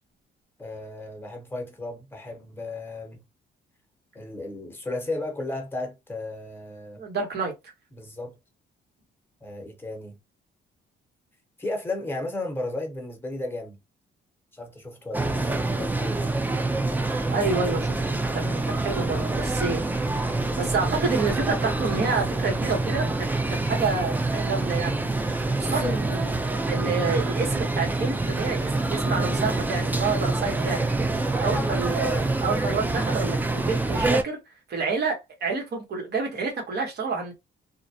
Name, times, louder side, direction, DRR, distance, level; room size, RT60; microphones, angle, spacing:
voice 1, 0.6-3.2 4.1-7.0 7.9-8.4 9.4-10.2 11.6-13.8 14.5-15.4 15.7-16.2 25.6-26.0 31.4-31.7, left 2 dB, 10° left, 1.0 m, -34 dB
voice 2, 7.0-7.5 17.3-20.0 20.5-23.1 23.6-25.0 25.6-26.3 26.7-30.9 31.4-34.4 34.7-37.3, right 4 dB, 55° right, 1.2 m, -28 dB
sound 1, 15.1-34.2, right 2 dB, 10° right, 0.4 m, -26 dB
2.4 x 2.1 x 2.7 m
cardioid pair, 90°, 20 cm